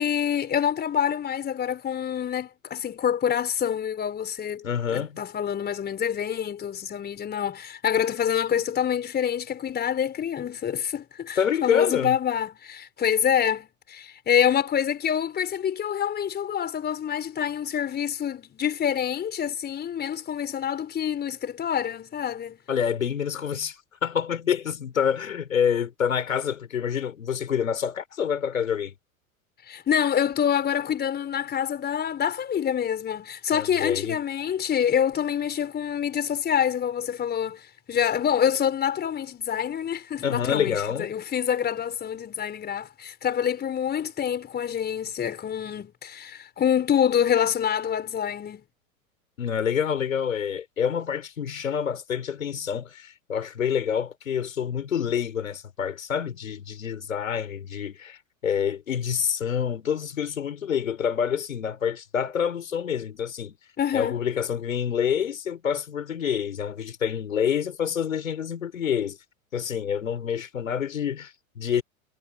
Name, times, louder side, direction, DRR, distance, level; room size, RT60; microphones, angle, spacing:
voice 1, 0.0-4.6 4.9-22.6 29.7-48.6 63.8-64.2, left 9 dB, 25° left, 4.7 m, -26 dB
voice 2, 4.6-5.2 11.4-12.2 22.7-28.9 33.5-34.2 40.2-41.1 49.4-63.6 63.9-69.2 69.5-71.8, left 8 dB, 70° left, 4.6 m, -27 dB
figure-of-eight pair, 90°, 41 cm